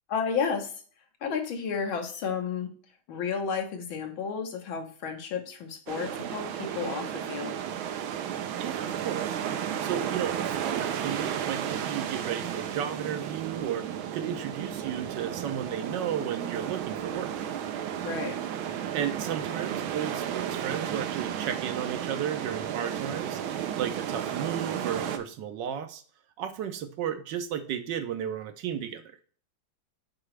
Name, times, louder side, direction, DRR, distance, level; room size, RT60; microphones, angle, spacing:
voice 1, 0.1-0.7 1.2-2.7 3.1-7.6 18.0-18.4, left 6 dB, 80° left, 4 dB, 2.0 m, -32 dB
sound 1, 5.9-25.2, right 9 dB, 90° right, 1.6 m, -33 dB
voice 2, 8.6-9.4 9.8-13.9 14.1-17.3 18.9-23.4 23.8-26.0 26.4-29.0, right 9 dB, 70° right, 8 dB, 1.3 m, -34 dB
6.8 x 4.9 x 3.2 m, 0.43 s
omnidirectional pair, 2.2 m